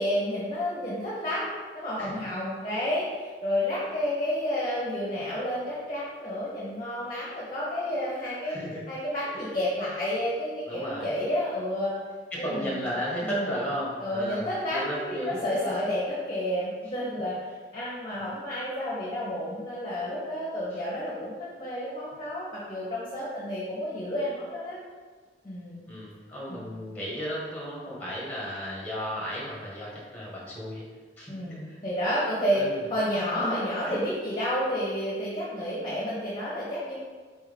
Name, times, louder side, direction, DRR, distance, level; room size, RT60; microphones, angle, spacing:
voice 1, 0.0-8.6 8.9-11.9 12.4-12.8 13.2-13.5 14.0-17.4 17.7-24.8 25.4-25.8 26.5-26.7 31.3-32.6 32.9-36.9, left 1 dB, 25° left, -6 dB, 0.8 m, -30 dB
voice 2, 8.4-8.8 9.3-9.5 10.7-11.1 12.3-15.7 25.9-30.8 31.2-31.3 32.5-32.8 33.4-33.5 33.9-34.0, equal, 10° left, -6 dB, 1.2 m, -34 dB
4.3 x 3.5 x 3.4 m, 1.5 s
head